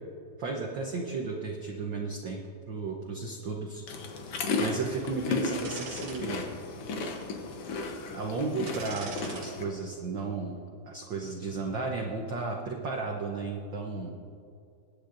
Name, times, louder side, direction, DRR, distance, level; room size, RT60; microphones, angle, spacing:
voice 1, 0.4-2.4 2.7-3.8 4.1-4.3 4.6-6.5 8.1-10.6 10.9-14.1, right 4 dB, 80° right, 1 dB, 1.0 m, -34 dB
sound 1, 3.9-9.6, left 4 dB, 60° left, 1.7 m, -34 dB
sound 2, 5.6-6.2 6.7-6.8 8.7-9.5 9.9-10.1, right 4 dB, 65° right, 2.6 m, -42 dB
22.0 x 10.0 x 2.6 m, 2.6 s
omnidirectional pair, 3.4 m